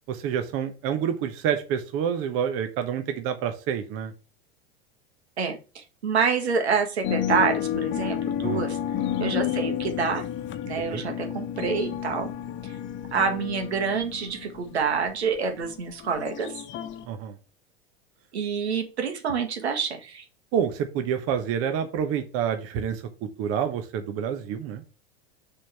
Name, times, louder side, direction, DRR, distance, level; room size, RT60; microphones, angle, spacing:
voice 1, 0.1-4.1 8.4-8.6 10.9-11.0 17.0-17.4 20.5-24.8, right 8 dB, 45° right, 7 dB, 1.1 m, -28 dB
voice 2, 5.4-8.8 9.2-10.2 10.6-12.3 12.6-12.7 13.1-16.5 18.3-20.2, right 6 dB, 90° right, 5 dB, 1.8 m, -27 dB
sound 1, 7.0-17.0, left 10 dB, 35° left, 1.0 m, -31 dB
6.5 x 3.9 x 5.6 m, 0.33 s
hypercardioid pair, 105°, 32 cm